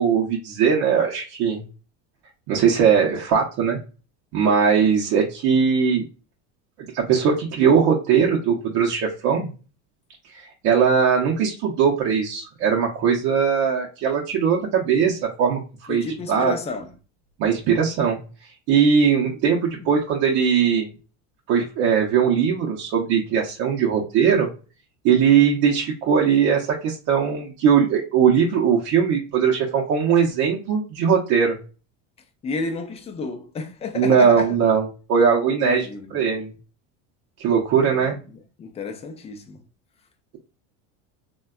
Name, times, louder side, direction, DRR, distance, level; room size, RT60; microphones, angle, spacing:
voice 1, 0.0-1.6 2.5-3.8 4.3-6.0 6.9-9.5 10.3-16.5 17.4-18.2 18.7-20.9 21.5-24.5 25.0-31.6 33.9-35.9 36.1-36.5 37.4-38.2, right 7 dB, 55° right, 0.7 m, -20 dB
voice 2, 15.9-16.9 19.2-19.4 19.7-19.9 32.4-34.6 35.5-36.1 37.9-39.6, left 4 dB, 20° left, 0.4 m, -32 dB
3.4 x 2.2 x 2.3 m
supercardioid pair, 125°, 35 cm